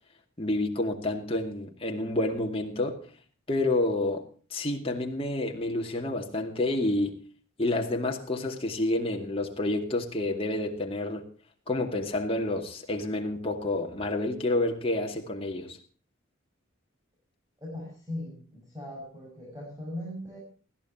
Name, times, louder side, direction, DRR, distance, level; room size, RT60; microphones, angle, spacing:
voice 1, 0.4-3.0 3.5-7.2 7.6-11.3 11.7-15.8, left 2 dB, 25° left, 2.3 m, -29 dB
voice 2, 17.6-20.4, left 1 dB, 15° right, 6.4 m, -39 dB
20.5 x 15.0 x 2.9 m
head